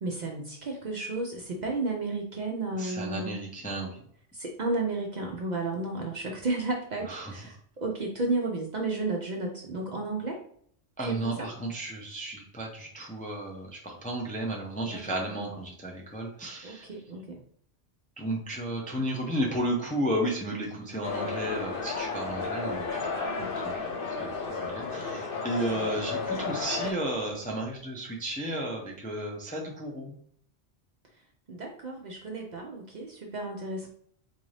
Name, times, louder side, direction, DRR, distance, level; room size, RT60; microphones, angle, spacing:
voice 1, 0.0-3.4 4.3-10.4 11.0-11.5 14.9-15.0 16.6-17.4 23.2-23.7 31.5-33.9, right 2 dB, 55° right, 0 dB, 0.5 m, -33 dB
voice 2, 2.8-4.0 7.1-7.3 11.0-16.9 18.2-23.2 23.5-30.1, right 1 dB, 10° left, -1 dB, 0.4 m, -33 dB
sound 1, 21.0-26.9, left 4 dB, 55° left, 0.9 m, -33 dB
3.9 x 2.5 x 3.2 m, 0.63 s
omnidirectional pair, 1.1 m